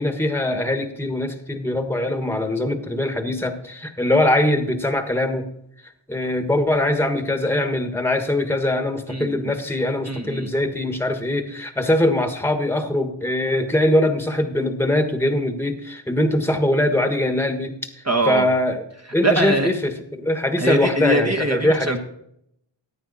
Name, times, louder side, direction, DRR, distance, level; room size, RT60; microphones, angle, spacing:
voice 1, 0.0-5.4 6.1-17.7 18.3-18.8 19.1-22.0, left 1 dB, 5° left, 7 dB, 1.4 m, -22 dB
voice 2, 9.1-9.5 10.0-10.5 18.0-18.5 19.2-19.7 20.6-22.0, right 2 dB, 35° right, 3 dB, 1.3 m, -22 dB
15.0 x 9.2 x 4.1 m, 0.75 s
wide cardioid pair, 50°, 45 cm